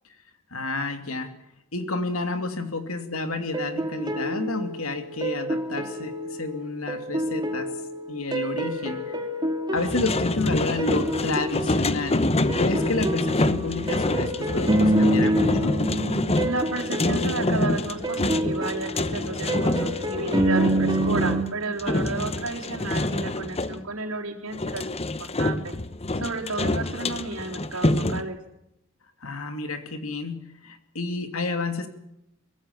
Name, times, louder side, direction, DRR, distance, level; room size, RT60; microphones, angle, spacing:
voice 1, 0.5-1.4 1.7-7.7 8.1-9.2 9.7-12.3 12.6-15.8 29.2-31.9, left 2 dB, 75° left, 8 dB, 2.7 m, -30 dB
sound 1, 3.5-21.4, right 1 dB, 20° right, 2.4 m, -28 dB
sound 2, 9.8-23.8 24.5-28.2, left 2 dB, 30° left, 1.0 m, -26 dB
voice 2, 16.4-25.1 25.4-25.7 26.1-28.4, right 3 dB, 90° right, 1 dB, 4.0 m, -32 dB
23.5 x 18.5 x 7.2 m, 0.84 s
head